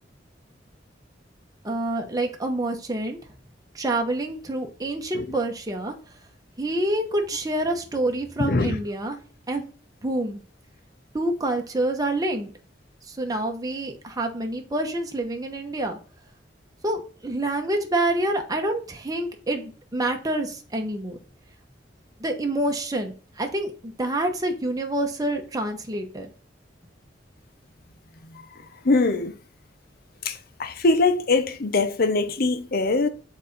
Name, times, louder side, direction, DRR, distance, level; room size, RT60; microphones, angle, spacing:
voice 1, 1.6-3.2 3.7-5.9 6.6-9.2 9.5-9.6 10.0-10.4 11.1-12.5 13.1-16.0 16.8-21.2 22.2-26.3, right 1 dB, 20° right, 1.0 m, -27 dB
voice 2, 8.4-8.8 28.8-29.3 30.3-30.4 30.6-33.1, left 3 dB, 55° left, 0.8 m, -22 dB
7.4 x 4.1 x 4.0 m
head